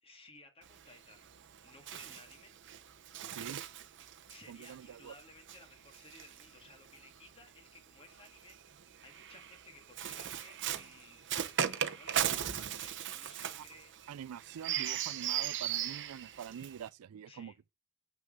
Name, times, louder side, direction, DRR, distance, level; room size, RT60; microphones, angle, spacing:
voice 1, 0.0-1.3 1.6-2.5 4.3-11.2 11.6-13.9 17.3-17.6, left 2 dB, 25° left, 2.0 m, -58 dB
Bird, 0.6-7.2 8.1-16.9, right 10 dB, 55° right, 0.8 m, -38 dB
voice 2, 4.5-5.1 12.2-12.4 13.6-13.7 14.1-17.7, right 8 dB, 70° right, 0.3 m, -46 dB
7.5 x 6.2 x 3.7 m
head